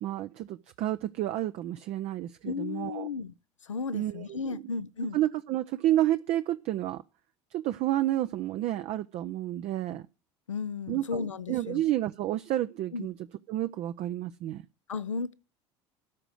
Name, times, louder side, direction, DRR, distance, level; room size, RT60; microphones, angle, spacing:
voice 1, 0.0-3.1 3.9-4.6 5.1-7.0 7.5-10.1 10.9-13.1 13.5-14.6, right 13 dB, 45° right, 0.5 m, -30 dB
voice 2, 2.4-3.3 3.7-5.2 10.5-11.8 12.9-13.1 14.9-15.3, left 5 dB, 80° left, 0.6 m, -34 dB
13.0 x 4.9 x 7.9 m
figure-of-eight pair, 65°, 16 cm